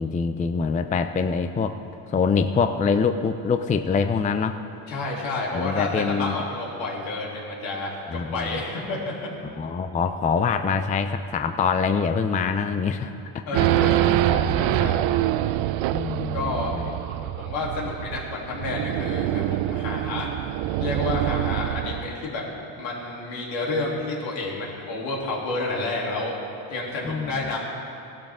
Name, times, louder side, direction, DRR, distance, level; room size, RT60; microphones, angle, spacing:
voice 1, 0.0-1.8 2.1-4.6 5.5-6.3 8.1-8.6 9.6-13.4 13.8-13.9 14.2-14.9 15.9-16.9 27.0-27.5, left 5 dB, 15° left, 8 dB, 0.4 m, -25 dB
voice 2, 4.9-9.3 13.5-15.1 16.3-16.8 17.2-20.3 20.8-22.4 22.8-26.4 26.7-27.6, left 2 dB, 75° left, -3 dB, 3.2 m, -30 dB
Race car auto racing / Idling / Accelerating revving vroom, 13.5-22.2, right 14 dB, 70° right, 0.5 m, -25 dB
17.5 x 12.0 x 3.7 m, 2.7 s
cardioid pair, 95°, 48 cm